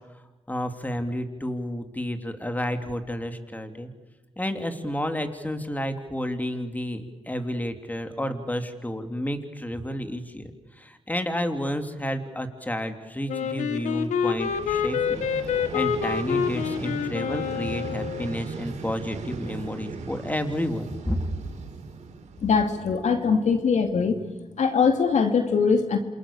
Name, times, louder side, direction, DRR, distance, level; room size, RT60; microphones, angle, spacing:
voice 1, 0.5-3.9 4.4-10.5 10.8-21.3, equal, 15° left, 6 dB, 3.3 m, -31 dB
Wind instrument woodwind instrument, 13.3-18.4, left 7 dB, 90° left, 1.6 m, -27 dB
Vehicle, 14.2-23.1, right 4 dB, 75° right, 4.7 m, -38 dB
voice 2, 22.4-24.2 24.6-26.0, left 5 dB, 75° left, 6 dB, 2.6 m, -22 dB
28.0 x 27.0 x 7.2 m, 1.1 s
cardioid pair, 60°, 12 cm